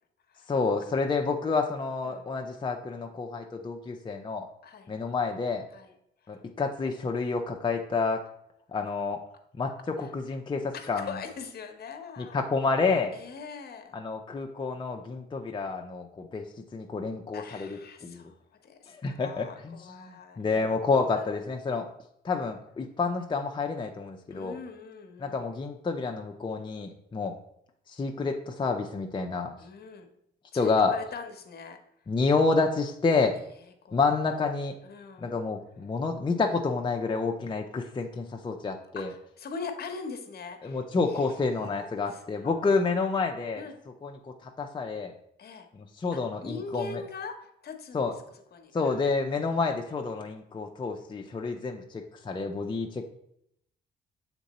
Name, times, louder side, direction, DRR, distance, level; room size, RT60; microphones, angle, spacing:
voice 1, 0.5-4.5 4.9-5.6 6.3-8.2 8.7-9.2 9.5-9.7 10.0-11.1 12.2-13.2 13.9-16.4 16.7-17.8 18.0-18.3 18.9-19.8 20.0-21.9 22.2-24.6 25.2-27.3 27.9-29.5 30.5-30.9 32.1-33.4 33.9-34.7 35.2-39.1 40.6-43.6 44.0-44.1 44.4-45.1 45.7-47.0 47.9-48.1 48.7-53.0, left 4 dB, 25° left, 2 dB, 0.6 m, -29 dB
voice 2, 4.6-4.9 5.7-5.9 6.2-6.4 10.0-10.1 10.7-12.5 13.1-14.0 17.3-20.4 21.1-21.3 24.3-25.5 29.6-30.1 30.5-31.8 33.6-34.2 34.8-35.4 39.0-42.7 43.5-43.8 45.4-45.7 46.1-48.1 48.5-49.0, left 5 dB, 50° left, 6 dB, 1.0 m, -42 dB
7.1 x 3.7 x 4.1 m, 0.74 s
cardioid pair, 90°, 20 cm